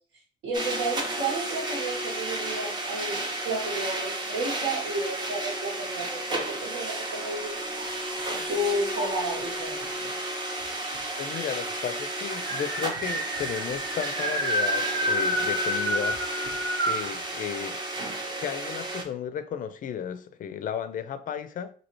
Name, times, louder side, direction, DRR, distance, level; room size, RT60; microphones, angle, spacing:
voice 1, 0.4-7.9 8.5-10.2, right 1 dB, 80° right, 1.4 m, -32 dB
sound 1, 0.5-19.0, right 1 dB, 25° right, 0.7 m, -33 dB
sound 2, 6.9-8.4 8.9-9.6 10.6-10.7 10.9-11.0 11.4-17.1, equal, 55° right, 0.9 m, -30 dB
voice 2, 11.2-16.2 16.9-17.8 18.4-21.7, left 8 dB, 45° left, 0.4 m, -34 dB
4.2 x 2.7 x 3.0 m
cardioid pair, 155°, 19 cm